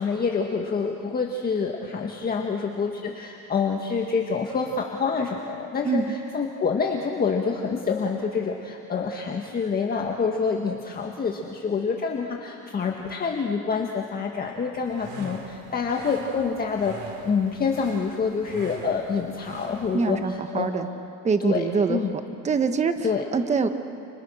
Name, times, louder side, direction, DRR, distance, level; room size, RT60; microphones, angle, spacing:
voice 1, 0.0-17.0 17.2-20.7 21.4-22.1 23.0-23.2, left 5 dB, 25° left, 1 dB, 1.7 m, -27 dB
voice 2, 5.8-6.2 19.9-20.9 21.2-22.0 22.4-23.7, right 5 dB, 20° right, 8 dB, 1.1 m, -24 dB
sound 1, 14.7-20.1, right 3 dB, 80° right, 4.4 m, -42 dB
30.0 x 30.0 x 6.4 m, 2.6 s
cardioid pair, 155°, 35 cm